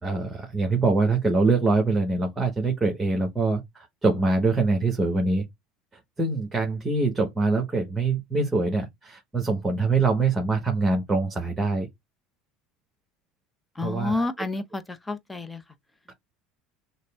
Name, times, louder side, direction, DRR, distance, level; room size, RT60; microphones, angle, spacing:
voice 1, 0.0-5.4 6.2-11.9 13.8-14.3 16.1-16.2, right 3 dB, 15° right, 1.5 m, -24 dB
voice 2, 13.8-15.6, left 2 dB, 10° left, 0.9 m, -29 dB
6.4 x 2.2 x 3.4 m
hypercardioid pair, 75°, 0 cm